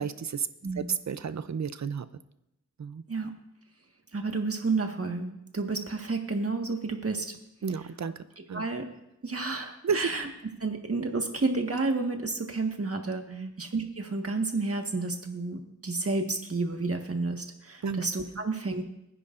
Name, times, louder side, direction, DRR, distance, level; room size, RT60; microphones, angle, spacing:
voice 1, 0.0-0.5 0.8-2.1 2.8-3.0 7.6-8.6 9.8-10.1 13.3-13.5 17.8-18.0, right 6 dB, 70° right, 13 dB, 0.6 m, -32 dB
voice 2, 4.1-7.4 8.5-8.9 9.2-10.3 10.6-18.8, right 3 dB, 50° right, 3 dB, 1.6 m, -31 dB
22.0 x 9.9 x 2.6 m, 0.86 s
wide cardioid pair, 55°, 29 cm